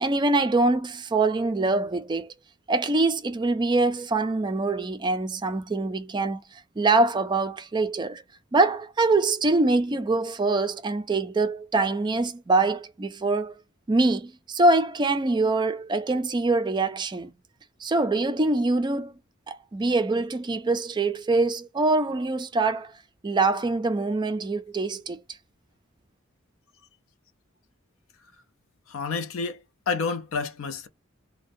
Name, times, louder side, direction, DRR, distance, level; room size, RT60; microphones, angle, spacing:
voice 1, 0.0-2.3 2.7-8.2 8.5-13.6 13.9-17.3 17.8-19.1 19.5-22.9 23.2-25.2, right 3 dB, 20° right, 0.3 m, -24 dB
voice 2, 28.9-29.6 29.9-30.9, left 4 dB, 75° left, 0.5 m, -29 dB
2.5 x 2.1 x 2.5 m
head